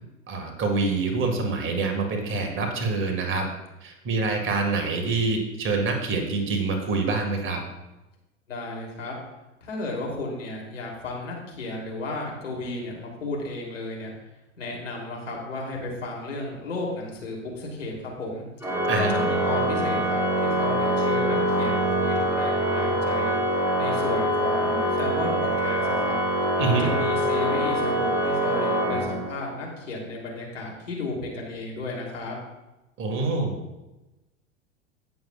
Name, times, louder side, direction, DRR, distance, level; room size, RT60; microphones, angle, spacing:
voice 1, 0.3-3.5 3.8-7.6 18.9-19.1 26.6-26.9 33.0-33.5, right 3 dB, 30° right, 3 dB, 2.0 m, -26 dB
voice 2, 8.5-9.2 9.6-14.1 14.6-18.7 19.0-23.3 23.8-26.2 26.7-32.4, left 2 dB, 75° left, -2 dB, 3.3 m, -33 dB
Organ, 18.6-29.6, right 1 dB, 5° right, 2.2 m, -24 dB
17.5 x 7.1 x 2.4 m, 1.0 s
figure-of-eight pair, 85°, 38 cm